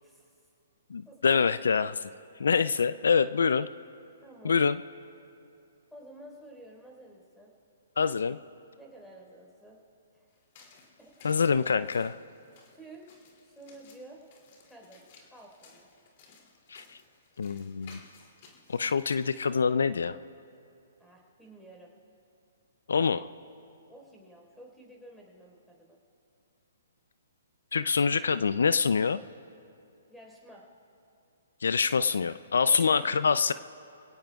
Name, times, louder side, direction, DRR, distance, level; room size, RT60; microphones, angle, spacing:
voice 1, 0.0-0.5 1.0-1.4 4.2-4.6 5.9-7.5 8.8-9.8 10.1-10.3 10.8-11.1 12.7-14.2 14.7-15.0 15.3-15.9 21.0-21.9 23.9-26.0 30.1-30.6 32.6-33.2 33.5-33.6, right 1 dB, ahead, -1 dB, 4.2 m, -51 dB
voice 2, 0.9-2.1 2.4-3.7 4.4-4.8 8.0-8.4 11.2-12.2 16.7-16.8 17.4-18.0 18.7-20.2 22.9-23.3 27.7-29.2 31.6-33.5, left 5 dB, 75° left, 15 dB, 0.4 m, -25 dB
sound 1, 10.3-19.5, left 4 dB, 45° left, 2.7 m, -58 dB
28.0 x 17.5 x 2.4 m, 2.6 s
hypercardioid pair, 135°, 0 cm